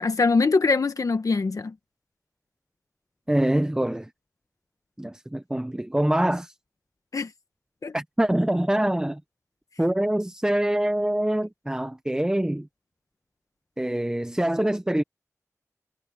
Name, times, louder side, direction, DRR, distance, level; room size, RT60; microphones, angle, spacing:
voice 1, 0.0-1.7 7.1-7.3 7.8-7.9, left 4 dB, 75° left, 1.1 m, -23 dB
voice 2, 3.3-4.1 5.0-6.5 7.9-9.2 9.8-12.7 13.8-15.0, right 1 dB, 10° right, 0.7 m, -24 dB
wide cardioid pair, 85°, 6 cm